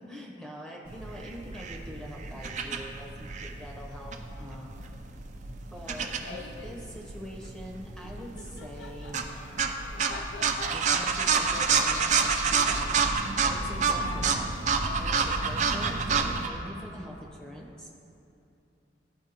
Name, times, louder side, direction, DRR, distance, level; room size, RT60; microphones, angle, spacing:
voice 1, 0.0-4.8 5.7-9.2 10.7-14.5 15.0-17.9, equal, 5° left, -2 dB, 0.7 m, -44 dB
sound 1, 0.9-16.5, right 5 dB, 40° right, 0.4 m, -29 dB
Laughter, 5.7-6.8 8.0-15.3, left 4 dB, 85° left, 0.5 m, -46 dB
12.5 x 4.4 x 2.9 m, 2.7 s
head